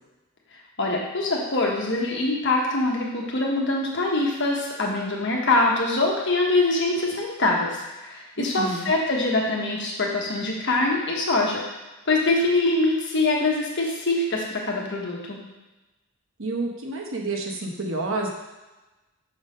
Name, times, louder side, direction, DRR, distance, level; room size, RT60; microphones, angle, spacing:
voice 1, 0.8-11.8 12.1-15.4, left 2 dB, 55° left, -2 dB, 1.2 m, -24 dB
voice 2, 8.4-8.9 16.4-18.3, right 2 dB, 65° right, 0 dB, 1.0 m, -29 dB
6.0 x 4.0 x 5.2 m, 1.1 s
head